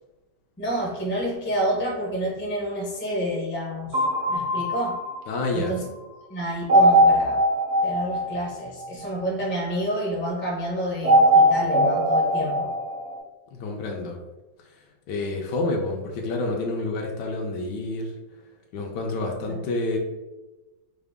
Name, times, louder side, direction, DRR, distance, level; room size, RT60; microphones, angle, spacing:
voice 1, 0.6-5.0 5.5-5.9 6.3-7.4 7.8-12.7 19.5-19.6, right 1 dB, 15° left, -3 dB, 0.4 m, -29 dB
sound 1, 3.9-5.7 6.7-9.2 11.0-13.2, equal, 40° right, 0.6 m, -20 dB
voice 2, 5.3-5.8 13.5-14.2 15.1-18.1 18.7-20.0, left 2 dB, 75° left, 1 dB, 1.2 m, -28 dB
4.8 x 2.1 x 3.4 m, 1.1 s
omnidirectional pair, 1.9 m